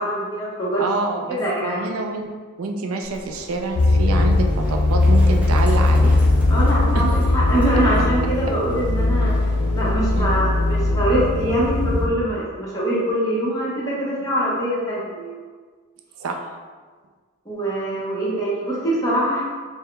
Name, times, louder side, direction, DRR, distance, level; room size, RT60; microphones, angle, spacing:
voice 1, 0.0-0.8 1.3-1.8 6.5-9.5 9.7-15.4 17.4-19.4, right 1 dB, 15° left, -8 dB, 1.0 m, -23 dB
voice 2, 0.8-2.3 2.6-6.2 6.9-7.1 8.5-8.6 10.1-10.3 16.2-16.5, right 3 dB, 85° right, 4 dB, 0.4 m, -27 dB
Livestock farm animals working animals, 3.0-10.4, equal, 5° right, 0.5 m, -38 dB
sound 1, 3.7-12.1, left 2 dB, 90° left, 0.5 m, -19 dB
4.7 x 2.1 x 3.3 m, 1.5 s
head